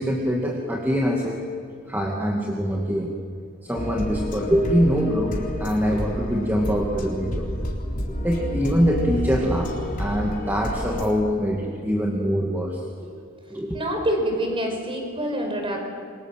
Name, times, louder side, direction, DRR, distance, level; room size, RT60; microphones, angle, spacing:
voice 1, 0.0-1.4 1.9-3.1 3.6-7.6 8.2-13.1 13.5-13.8, equal, 10° right, -1 dB, 2.4 m, -24 dB
sound 1, 3.7-11.1, equal, 40° left, 3.9 m, -30 dB
voice 2, 13.7-15.8, equal, 25° right, 3 dB, 5.3 m, -26 dB
28.0 x 24.5 x 7.7 m, 2.3 s
head